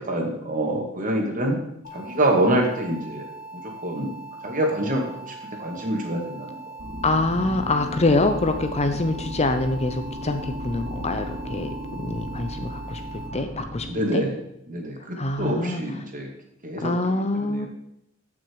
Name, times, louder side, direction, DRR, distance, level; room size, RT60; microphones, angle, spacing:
voice 1, 0.0-1.6 1.9-3.2 3.5-4.1 4.4-5.3 5.6-6.6 13.9-14.4 14.7-16.3 16.6-17.7, right 1 dB, 40° right, 1 dB, 2.2 m, -26 dB
sound 1, 1.8-13.3, right 2 dB, 65° left, 3.1 m, -41 dB
sound 2, 6.8-13.9, equal, 80° right, 2.6 m, -35 dB
voice 2, 7.0-13.0 13.3-13.9 14.1-14.2 15.2-15.8 16.8-17.7, left 2 dB, 30° left, 7 dB, 0.8 m, -25 dB
14.5 x 6.2 x 4.8 m, 0.79 s
head